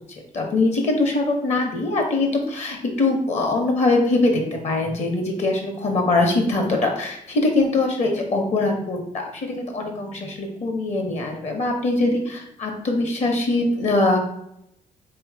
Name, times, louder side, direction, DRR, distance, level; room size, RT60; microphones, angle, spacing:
voice 1, 0.3-9.0 9.4-14.2, left 2 dB, 50° left, 3 dB, 1.1 m, -22 dB
3.7 x 3.0 x 4.7 m, 0.78 s
cardioid pair, 130°, 15 cm